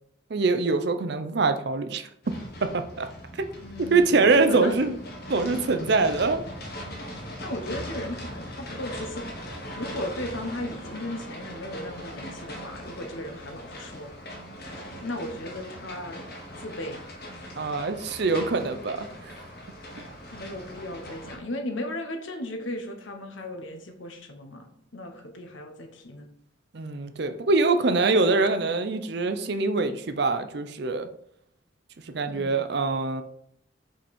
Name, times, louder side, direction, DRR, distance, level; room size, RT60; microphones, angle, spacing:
voice 1, 0.3-2.1 2.6-3.1 3.4-3.5 3.9-4.9 5.3-6.4 17.6-19.3 26.7-31.1 32.1-33.2, right 3 dB, 55° right, 9 dB, 0.5 m, -24 dB
sound 1, 2.2-21.4, equal, 50° left, 1.4 m, -40 dB
voice 2, 3.6-4.9 7.4-9.3 9.8-14.1 15.0-16.2 16.6-17.0 17.3-17.7 20.3-26.3 32.3-32.7, left 1 dB, 70° left, 5 dB, 1.1 m, -36 dB
5.2 x 5.1 x 4.3 m, 0.70 s
head